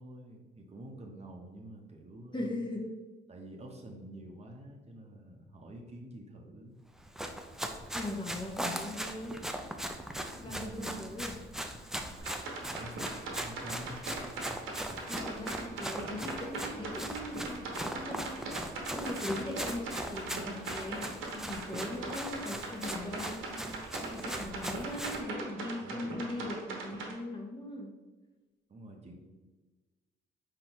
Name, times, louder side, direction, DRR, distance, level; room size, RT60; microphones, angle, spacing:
voice 1, 0.0-2.6 3.3-6.8 10.4-11.1 12.6-14.6 25.8-26.5 28.7-29.1, right 1 dB, 35° right, 1 dB, 0.8 m, -48 dB
voice 2, 2.3-2.9 7.9-9.4 10.3-11.3 15.1-23.7 24.0-27.9, left 1 dB, 25° left, 0 dB, 0.8 m, -40 dB
Run, 7.0-25.2, right 1 dB, ahead, 0.4 m, -40 dB
sound 1, 12.2-27.1, right 3 dB, 85° right, 1.0 m, -40 dB
4.5 x 4.0 x 3.0 m, 1.2 s
cardioid pair, 90°, 20 cm